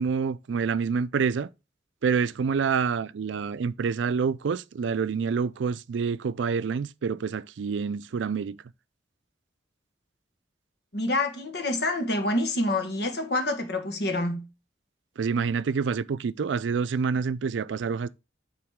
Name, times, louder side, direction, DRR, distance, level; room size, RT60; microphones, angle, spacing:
voice 1, 0.0-1.5 2.0-8.6 15.2-18.1, right 5 dB, 80° right, 0.4 m, -27 dB
voice 2, 10.9-14.5, left 2 dB, 60° left, 1.4 m, -27 dB
8.7 x 4.0 x 3.5 m
head